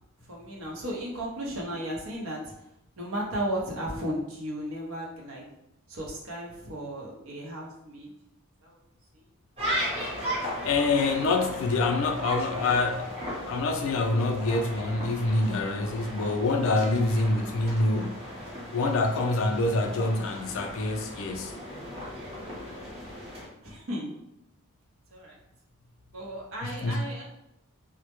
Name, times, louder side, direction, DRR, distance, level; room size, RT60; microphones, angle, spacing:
voice 1, 0.3-2.5 3.0-5.4 5.9-8.1 8.6-8.8 23.6-24.1 25.1-25.4 26.1-27.2, equal, 65° right, -2 dB, 0.7 m, -35 dB
sound 1, 9.6-23.5, equal, 25° right, 0.6 m, -36 dB
voice 2, 10.6-13.1 13.5-18.3 18.7-21.6 26.6-27.0, left 2 dB, 60° left, 3 dB, 0.3 m, -26 dB
2.1 x 2.0 x 2.9 m, 0.83 s
head